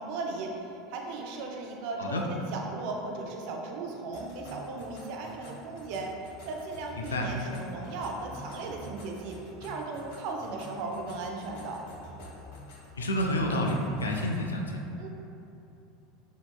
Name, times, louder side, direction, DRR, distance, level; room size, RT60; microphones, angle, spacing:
voice 1, 0.0-6.1 6.4-11.8 15.0-15.1, right 3 dB, 60° right, 1 dB, 0.5 m, -37 dB
sound 1, 4.1-14.5, left 1 dB, 70° left, 0.8 m, -47 dB
voice 2, 7.0-7.3 12.9-14.7, left 1 dB, 90° left, 1 dB, 0.3 m, -29 dB
4.0 x 2.9 x 2.3 m, 2.8 s
hypercardioid pair, 80°, 0 cm